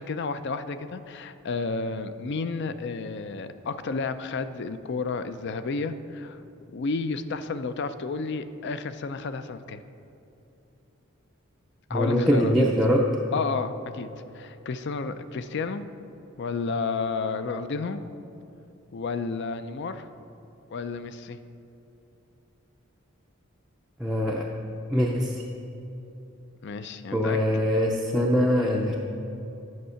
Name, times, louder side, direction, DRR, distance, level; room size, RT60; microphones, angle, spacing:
voice 1, 0.0-6.4 6.7-9.8 11.9-12.5 13.3-14.1 14.3-15.8 16.4-18.0 18.9-20.1 20.7-21.4 26.6-27.4, left 4 dB, 55° left, 11 dB, 0.4 m, -31 dB
voice 2, 11.9-13.1 24.0-24.5 24.9-25.5 27.1-28.9, equal, ahead, -2 dB, 0.4 m, -23 dB
9.5 x 6.4 x 5.6 m, 2.9 s
head